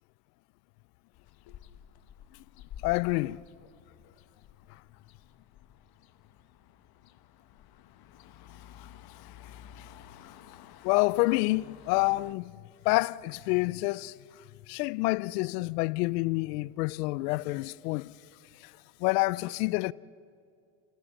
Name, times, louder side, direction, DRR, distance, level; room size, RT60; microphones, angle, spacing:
sound 1, 1.1-12.3, left 9 dB, 50° left, 1.3 m, -52 dB
voice 1, 2.8-3.4 10.8-12.5 12.8-14.2 14.7-18.1 18.6-18.7 19.0-19.9, left 22 dB, 85° left, 0.6 m, -28 dB
29.5 x 16.5 x 7.3 m
supercardioid pair, 100°, 47 cm